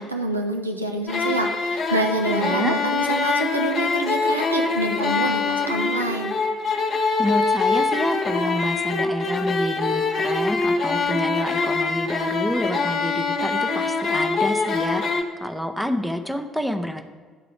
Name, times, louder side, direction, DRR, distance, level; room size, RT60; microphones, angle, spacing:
voice 1, 0.0-6.3, right 2 dB, 85° right, 3 dB, 0.5 m, -26 dB
sound 1, 1.1-15.2, left 4 dB, 45° left, 1.0 m, -24 dB
voice 2, 2.3-2.8 7.2-17.0, equal, ahead, 7 dB, 0.7 m, -28 dB
10.5 x 3.9 x 4.9 m, 1.5 s
figure-of-eight pair, 50°, 0 cm